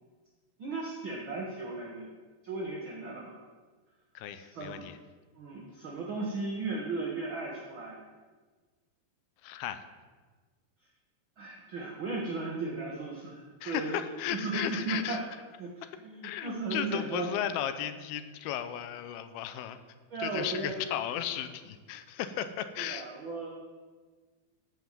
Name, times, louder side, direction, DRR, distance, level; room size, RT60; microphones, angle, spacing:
voice 1, 0.6-2.1 2.4-3.3 4.3-4.8 5.3-8.0 11.4-14.0 14.3-15.2 15.6-15.7 16.0-17.3 20.1-20.9 22.8-23.5, right 3 dB, 65° right, -2 dB, 1.2 m, -36 dB
voice 2, 4.1-5.0 9.4-9.8 13.6-15.2 15.8-15.9 16.2-19.8 20.2-23.1, left 10 dB, 85° left, 11 dB, 2.7 m, -35 dB
13.5 x 5.7 x 7.4 m, 1.4 s
omnidirectional pair, 4.3 m